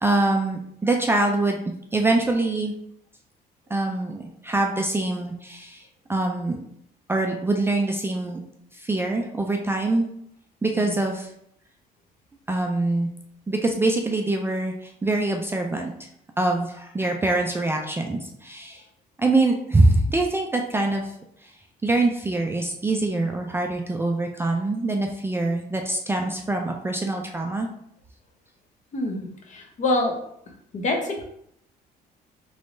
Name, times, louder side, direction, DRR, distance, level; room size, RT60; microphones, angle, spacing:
voice 1, 0.0-1.6 1.9-2.7 3.7-5.8 6.1-6.6 7.1-8.4 8.8-10.1 10.6-11.3 12.5-13.1 13.5-14.7 15.0-15.9 16.4-18.8 19.2-21.0 21.8-27.7, right 2 dB, 15° right, 2 dB, 0.3 m, -24 dB
voice 2, 28.9-30.1 30.7-31.2, left 2 dB, 45° left, 2 dB, 0.8 m, -26 dB
3.4 x 3.1 x 2.6 m, 0.74 s
cardioid pair, 110°, 17 cm